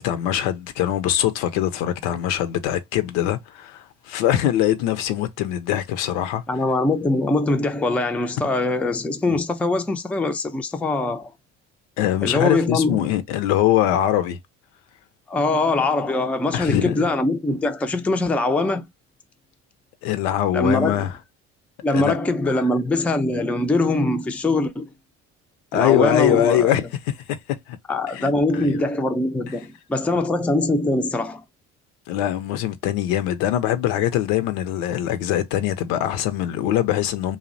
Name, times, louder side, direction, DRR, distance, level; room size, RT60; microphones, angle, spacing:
voice 1, 0.0-6.4 9.3-9.4 12.0-14.4 16.5-17.0 20.0-21.1 21.9-22.2 25.7-26.8 27.3-27.4 27.7-27.8 28.1-28.8 32.1-37.4, left 12 dB, 75° left, 0.5 m, -22 dB
voice 2, 6.5-11.3 12.2-13.0 15.3-18.8 20.5-21.1 21.8-24.9 25.7-26.7 27.9-31.4, left 2 dB, 5° left, 0.4 m, -22 dB
2.5 x 2.0 x 2.5 m
hypercardioid pair, 60°, 36 cm